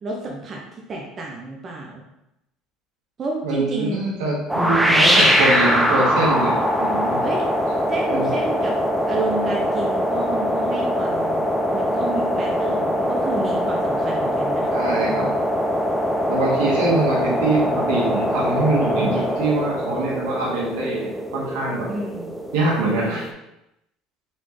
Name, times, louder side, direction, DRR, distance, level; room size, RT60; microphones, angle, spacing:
voice 1, 0.0-0.6 0.9-2.0 3.2-4.0 7.2-7.4 7.9-8.7 9.1-11.4 11.7-15.3 21.9-22.4 22.9-23.2, right 2 dB, 35° right, -1 dB, 0.8 m, -30 dB
voice 2, 3.4-7.2 8.1-8.3 14.7-15.3 16.3-21.9 22.5-23.3, right 2 dB, 90° right, -4 dB, 1.6 m, -23 dB
sound 1, 4.5-23.3, equal, 5° right, 0.5 m, -22 dB
sound 2, 5.2-13.4, left 8 dB, 55° left, 0.6 m, -36 dB
4.2 x 3.5 x 3.2 m, 0.85 s
supercardioid pair, 110°, 0 cm